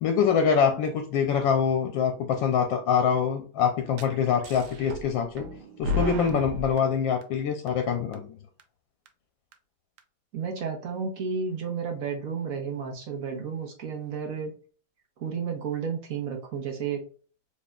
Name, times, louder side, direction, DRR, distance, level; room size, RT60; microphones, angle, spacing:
voice 1, 0.0-5.5 5.8-8.4, left 7 dB, 75° left, 5 dB, 1.3 m, -25 dB
sound 1, 4.0-4.1 4.4-5.1 5.4-6.8 7.2-7.3 7.7-7.8 8.1-8.2 8.6-8.7 9.1-9.2 9.5-9.6 10.0-10.1, left 1 dB, 80° right, 1.4 m, -31 dB
voice 2, 10.3-14.5 15.2-17.0, right 6 dB, 55° right, 2 dB, 1.1 m, -32 dB
4.1 x 3.3 x 2.3 m, 0.39 s
omnidirectional pair, 2.1 m